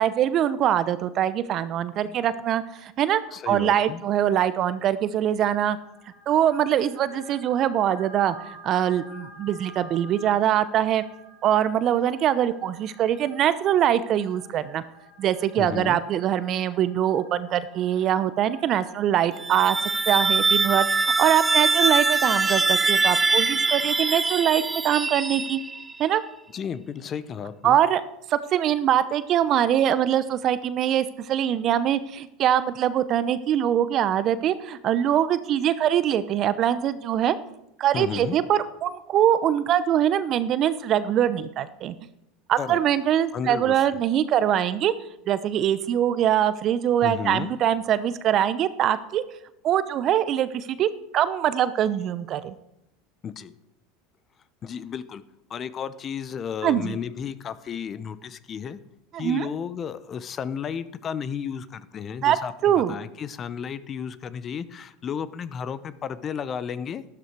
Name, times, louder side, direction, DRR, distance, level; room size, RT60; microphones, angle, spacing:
voice 1, 0.0-3.2 3.5-5.8 6.3-11.0 11.4-14.8 15.2-19.8 20.1-25.6 26.0-26.2 27.6-28.0 28.3-37.4 37.8-41.9 42.5-44.9 45.3-49.2 49.6-52.5 56.6-57.0 59.1-59.5 62.2-62.4 62.6-62.9, right 10 dB, 45° right, 14 dB, 0.8 m, -23 dB
voice 2, 3.3-4.0 15.6-16.0 26.5-27.8 37.9-38.4 42.6-42.8 43.3-44.0 47.0-47.5 53.2-53.5 54.6-55.2 55.5-58.8 59.2-67.0, left 7 dB, 35° left, 15 dB, 0.8 m, -33 dB
sound 1, 5.6-24.2, equal, 85° left, 3.7 m, -50 dB
sound 2, 19.3-26.0, right 3 dB, 15° right, 0.5 m, -23 dB
12.5 x 12.0 x 4.7 m, 0.83 s
hypercardioid pair, 90°, 0 cm